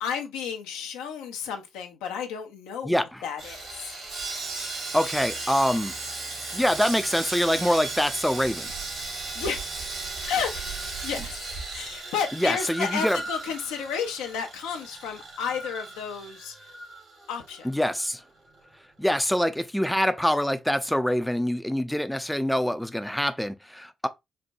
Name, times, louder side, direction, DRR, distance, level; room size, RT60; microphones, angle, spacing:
voice 1, 0.0-2.9 3.2-4.0 9.4-9.6 10.3-10.6 11.0-11.4 11.7-16.5 17.3-17.7, left 7 dB, 80° left, 0.6 m, -32 dB
voice 2, 2.8-3.3 4.9-5.9 6.5-8.7 12.3-13.2 17.6-18.2 19.0-24.1, equal, 5° left, 0.4 m, -25 dB
Sawing, 3.4-17.6 17.9-18.1 18.5-18.7, right 3 dB, 65° right, 1.8 m, -36 dB
4.1 x 2.2 x 2.5 m
hypercardioid pair, 45°, 0 cm